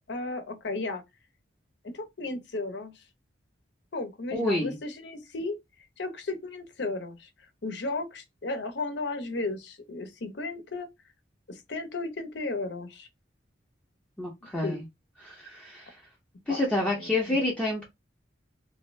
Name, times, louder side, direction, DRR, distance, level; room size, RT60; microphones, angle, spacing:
voice 1, 0.1-1.0 1.8-3.0 3.9-5.6 6.0-7.3 7.6-10.9 11.5-13.1 14.6-14.8 16.5-17.4, left 2 dB, 65° left, 0.7 m, -34 dB
voice 2, 4.3-4.7 14.2-14.8 15.2-16.0 16.5-17.8, left 2 dB, 5° left, 0.7 m, -28 dB
2.7 x 2.5 x 3.1 m
head